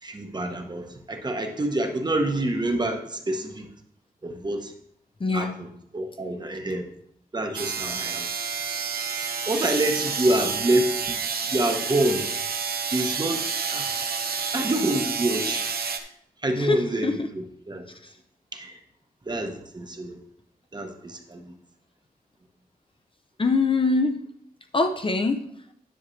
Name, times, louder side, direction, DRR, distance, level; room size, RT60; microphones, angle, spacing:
voice 1, 0.0-3.7 4.2-4.7 5.3-6.9 7.3-8.3 9.5-11.2 11.5-12.3 12.9-13.9 14.5-15.7 16.0-16.1 16.4-17.8 18.5-18.8 19.3-20.2 20.7-21.5, right 1 dB, 30° right, 4 dB, 1.0 m, -27 dB
voice 2, 5.2-5.6 16.6-17.3 18.0-18.1 23.4-24.2 24.7-25.5, left 3 dB, 35° left, 6 dB, 0.6 m, -23 dB
sound 1, 7.5-16.0, right 5 dB, 80° right, 0.8 m, -29 dB
10.0 x 6.3 x 3.2 m, 0.70 s
wide cardioid pair, 140°, 15 cm